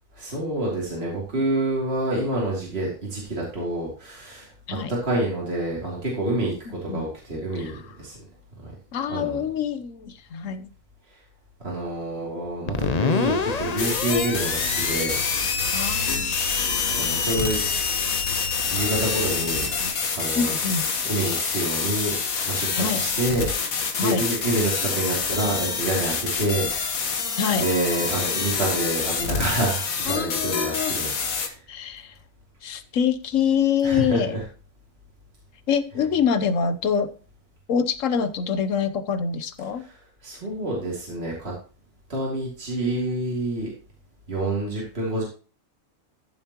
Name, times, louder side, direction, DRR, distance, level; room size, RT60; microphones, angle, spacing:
voice 1, 0.1-8.2 8.6-8.7 9.1-9.4 11.6-15.2 16.9-17.6 18.7-19.7 20.2-20.5 21.0-22.2 22.4-26.7 27.0-27.2 27.6-31.1 31.4-31.5 33.8-34.4 39.8-39.9 40.2-41.5 42.1-43.7 44.3-45.2, right 1 dB, 45° right, -3 dB, 3.2 m, -27 dB
voice 2, 6.7-7.1 7.6-7.8 8.9-10.7 15.7-16.3 20.3-20.9 22.7-23.1 24.0-24.2 27.4-27.7 30.1-31.0 31.7-32.1 32.6-34.4 35.7-37.1 37.7-39.8, left 7 dB, 70° left, 12 dB, 1.2 m, -25 dB
Screech, 12.7-23.1, left 5 dB, 35° left, 0.7 m, -30 dB
sound 1, 13.2-19.9, left 2 dB, 60° right, 6.0 m, -38 dB
sound 2, 13.8-31.5, left 5 dB, 85° left, 1.9 m, -27 dB
14.0 x 7.2 x 3.0 m, 0.37 s
omnidirectional pair, 1.4 m